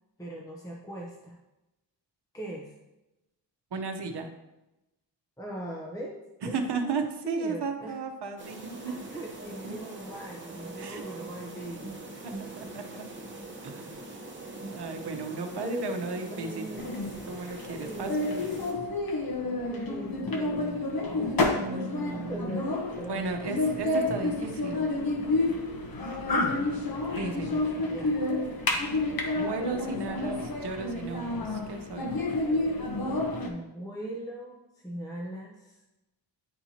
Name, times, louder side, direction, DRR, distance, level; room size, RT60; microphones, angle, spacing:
voice 1, 0.2-1.4 2.3-2.7 5.4-6.2 6.4-7.9 8.8-12.1 15.5-16.8 17.8-18.2 19.7-20.8 21.2-21.4 22.3-23.5 27.9-28.2 33.4-35.8, equal, 10° left, -3 dB, 0.8 m, -40 dB
voice 2, 3.7-4.3 6.4-8.9 9.6-9.7 10.8-11.0 12.2-13.1 13.6-14.0 14.6-16.9 17.3-18.4 21.4-22.5 23.0-24.9 27.1-27.6 29.3-32.1, right 4 dB, 60° right, 5 dB, 0.9 m, -35 dB
sound 1, 8.4-18.7, right 2 dB, 25° right, 1.1 m, -42 dB
sound 2, 16.8-33.5, left 2 dB, 50° left, 1.1 m, -30 dB
10.0 x 4.4 x 2.8 m, 0.96 s
wide cardioid pair, 135°, 44 cm